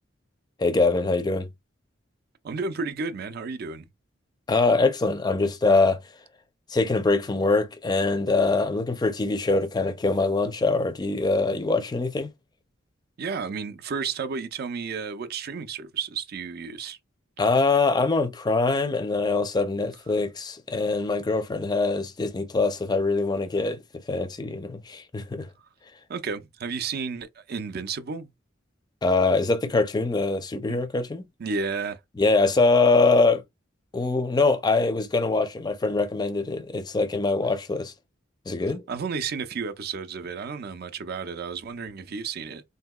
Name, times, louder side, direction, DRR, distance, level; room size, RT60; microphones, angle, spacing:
voice 1, 0.6-1.5 4.5-6.0 6.7-12.3 17.4-23.8 24.1-25.5 29.0-31.3 32.2-33.4 33.9-37.9 38.5-38.8, left 3 dB, 20° left, 0.4 m, -23 dB
voice 2, 2.4-3.8 13.2-17.0 26.1-28.3 30.7-30.8 31.4-32.0 38.9-42.6, right 5 dB, 55° right, 0.5 m, -32 dB
3.6 x 2.7 x 2.2 m
head